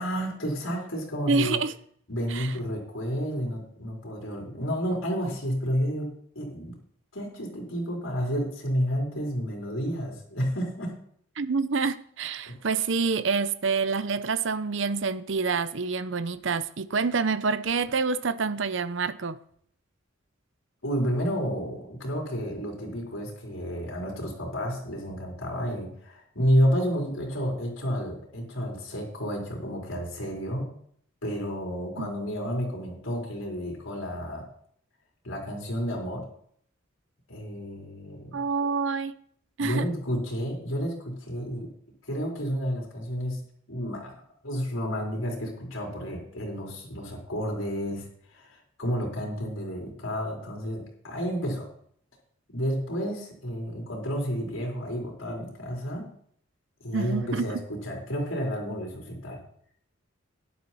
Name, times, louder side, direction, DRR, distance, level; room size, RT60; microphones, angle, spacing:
voice 1, 0.0-1.6 2.1-6.7 7.1-11.0 12.5-12.6 20.8-30.7 31.2-34.5 35.2-36.2 37.3-38.4 39.6-41.7 42.0-43.4 43.7-51.7 52.5-56.1 56.8-59.4, equal, 80° left, 3.9 m, -31 dB
voice 2, 1.3-1.7 2.3-2.5 11.4-19.4 32.0-32.1 38.3-39.1 39.6-39.9 56.9-57.5, right 4 dB, 65° right, 0.7 m, -27 dB
12.5 x 10.0 x 4.2 m
head